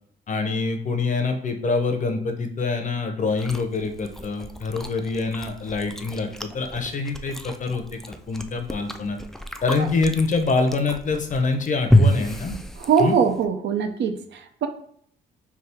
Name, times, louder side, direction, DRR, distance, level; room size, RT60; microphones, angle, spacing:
voice 1, 0.3-9.2 9.6-12.6 13.0-13.2, left 4 dB, 40° left, 6 dB, 0.7 m, -25 dB
Chewing mastication, 3.3-13.4, left 1 dB, ahead, 0.3 m, -28 dB
voice 2, 12.8-14.7, right 6 dB, 65° right, 7 dB, 0.5 m, -22 dB
3.4 x 2.3 x 4.3 m, 0.64 s
cardioid pair, 90°, 20 cm